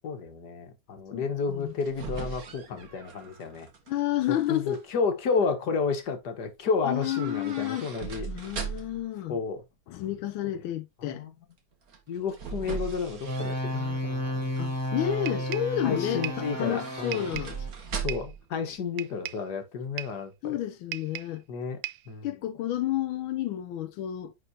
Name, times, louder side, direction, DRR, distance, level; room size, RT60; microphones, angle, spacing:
voice 1, 0.0-3.7 4.5-8.3 9.3-9.6 11.0-11.3 12.1-14.8 15.8-17.3 18.0-20.6 21.5-21.8 22.1-22.3, left 5 dB, 55° left, 1.8 m, -31 dB
voice 2, 1.1-1.7 2.7-2.8 3.9-4.8 6.8-7.9 8.3-9.4 9.9-11.3 14.6-17.6 20.4-21.4 22.2-24.3, left 12 dB, 90° left, 1.4 m, -31 dB
sound 1, 1.5-3.9 4.2-4.8 7.0-9.1 11.9-14.0 14.4-14.9 16.4-18.5 18.7-18.8, right 6 dB, 50° right, 1.7 m, -39 dB
sound 2, 13.3-17.7, equal, 10° right, 1.8 m, -32 dB
sound 3, 15.3-15.8 16.2-16.5 17.1-17.6 18.1-18.4 19.0-19.5 20.0-20.3 20.9-21.4 21.8-22.1, right 14 dB, 75° right, 1.2 m, -38 dB
10.0 x 4.3 x 2.7 m
omnidirectional pair, 2.2 m